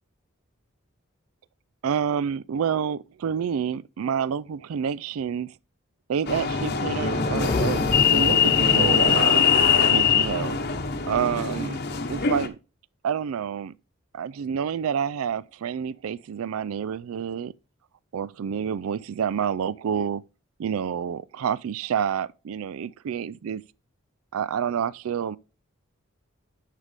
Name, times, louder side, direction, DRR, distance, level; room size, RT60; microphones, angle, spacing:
voice 1, 1.8-5.5 6.1-9.4 9.9-10.6 11.1-11.8 12.1-12.6 13.0-13.7 14.1-17.5 18.1-20.2 20.6-23.6 24.3-25.4, right 7 dB, 90° right, 0.4 m, -28 dB
sound 1, 6.3-12.5, left 7 dB, 50° left, 1.0 m, -22 dB
sound 2, 7.0-10.3, left 2 dB, 25° left, 0.3 m, -29 dB
11.0 x 6.6 x 3.4 m
head